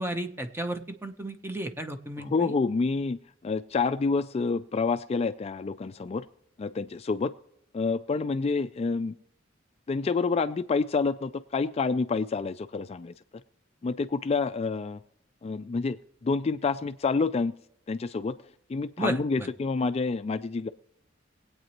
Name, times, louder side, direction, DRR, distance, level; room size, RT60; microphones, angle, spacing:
voice 1, 0.0-2.5 19.0-19.5, right 1 dB, 10° right, 6 dB, 0.9 m, -33 dB
voice 2, 2.2-3.2 3.4-6.3 6.6-7.3 7.7-9.1 9.9-13.1 13.8-15.0 15.4-17.5 17.9-18.4 18.7-20.7, left 4 dB, 30° left, 11 dB, 0.3 m, -28 dB
22.0 x 8.7 x 3.0 m, 0.76 s
head